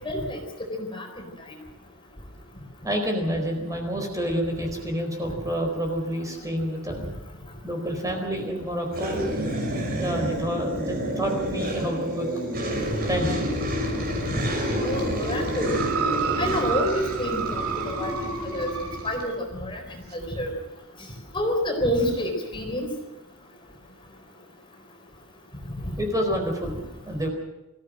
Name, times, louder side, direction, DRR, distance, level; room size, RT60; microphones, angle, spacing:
voice 1, 0.0-0.4 0.9-1.1 14.3-14.4 14.8-15.8 16.4-18.2 18.4-18.7 19.0-19.8 20.1-20.5 21.3-22.9, equal, 25° left, 2 dB, 4.2 m, -28 dB
voice 2, 2.8-7.0 7.6-9.2 9.6-12.3 13.1-13.5 26.0-27.3, equal, 15° right, 2 dB, 4.3 m, -28 dB
sound 1, 8.9-19.3, equal, 45° right, 5.4 m, -29 dB
sound 2, 15.6-19.3 20.1-20.2, right 7 dB, 75° right, 2.5 m, -30 dB
24.5 x 15.5 x 7.6 m, 1.0 s
head